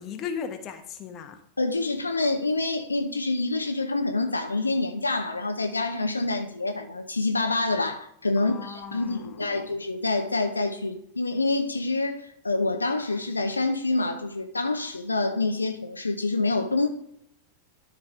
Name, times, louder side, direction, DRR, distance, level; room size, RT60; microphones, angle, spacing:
voice 1, 0.0-1.4 8.4-9.7, left 7 dB, 30° left, 1.1 m, -37 dB
voice 2, 1.6-16.9, left 2 dB, 80° left, 0.6 m, -27 dB
12.5 x 4.8 x 3.6 m
figure-of-eight pair, 90°, 0 cm